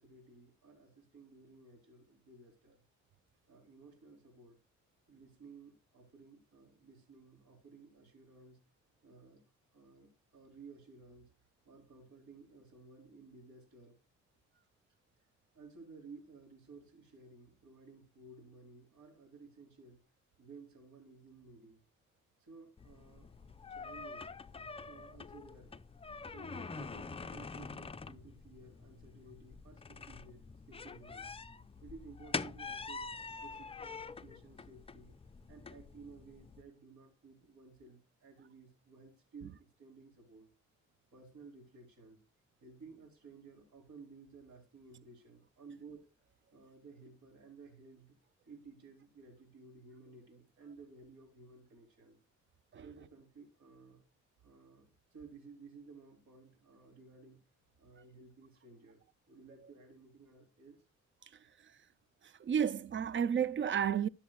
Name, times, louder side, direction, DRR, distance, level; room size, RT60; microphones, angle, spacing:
voice 1, 0.0-2.8 3.5-4.6 5.1-8.6 9.0-9.4 9.7-11.3 11.6-14.0 15.5-20.0 20.4-21.8 22.4-23.3 23.7-24.3 24.9-25.7 26.3-31.3 31.8-33.1 33.4-35.1 35.5-40.5 41.1-42.2 42.6-46.1 46.5-48.2 48.5-52.2 52.8-54.0 54.4-57.4 57.8-60.8, right 4 dB, 70° right, 3.6 m, -56 dB
sound 1, 22.8-36.6, left 4 dB, 20° left, 0.6 m, -46 dB
voice 2, 62.4-64.1, right 8 dB, 40° right, 0.5 m, -31 dB
13.0 x 7.1 x 2.3 m
cardioid pair, 90°, 30 cm